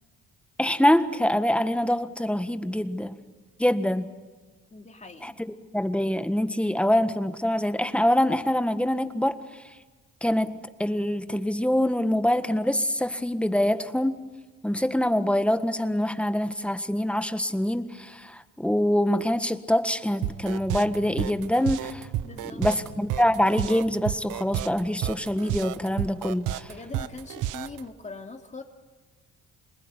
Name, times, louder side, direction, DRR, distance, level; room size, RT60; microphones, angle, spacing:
voice 1, 0.6-3.2 3.6-4.1 5.2-5.3 5.7-9.4 10.2-14.2 14.6-22.1 22.5-26.7, left 1 dB, 5° left, 10 dB, 1.5 m, -25 dB
voice 2, 4.7-5.4 22.2-22.6 26.6-28.6, left 3 dB, 25° left, 4 dB, 2.7 m, -41 dB
sound 1, 20.2-27.8, right 13 dB, 90° right, 0.8 m, -31 dB
27.0 x 20.5 x 9.8 m, 1.3 s
cardioid pair, 90°, 30 cm